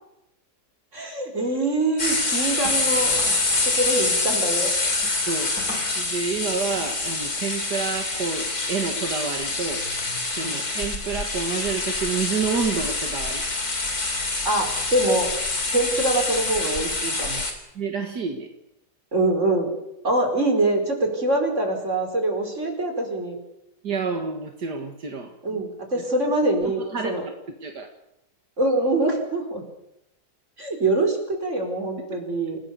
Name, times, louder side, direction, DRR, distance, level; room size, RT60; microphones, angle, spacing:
voice 1, 0.9-3.2 3.6-4.7 10.4-10.6 14.4-15.3 15.7-17.4 19.1-19.7 20.0-23.4 25.4-27.2 28.6-29.6 30.6-32.6, right 2 dB, 45° right, 2 dB, 5.1 m, -24 dB
sound 1, 2.0-17.5, left 2 dB, 60° left, 4.1 m, -26 dB
voice 2, 6.0-9.8 10.4-13.4 17.8-18.5 23.8-25.6 25.9-26.0 26.6-27.3 27.6-27.9, right 5 dB, 75° right, 3 dB, 2.5 m, -29 dB
29.0 x 18.0 x 7.0 m, 0.83 s
omnidirectional pair, 1.8 m